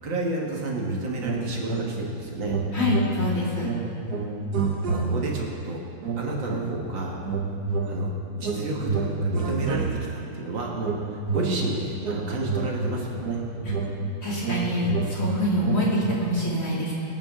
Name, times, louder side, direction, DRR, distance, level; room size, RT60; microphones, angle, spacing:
voice 1, 0.0-2.6 4.9-5.8 6.2-7.2 7.8-13.4, right 2 dB, 70° right, -2 dB, 2.4 m, -31 dB
sound 1, 1.2-2.2 2.4-5.5 6.0-6.9 7.2-10.3 10.8-16.2, right 3 dB, 55° right, 1.6 m, -29 dB
voice 2, 2.7-3.7 13.6-13.7 14.2-16.9, left 1 dB, 40° left, -6 dB, 3.3 m, -25 dB
24.5 x 9.1 x 3.8 m, 2.6 s
omnidirectional pair, 2.1 m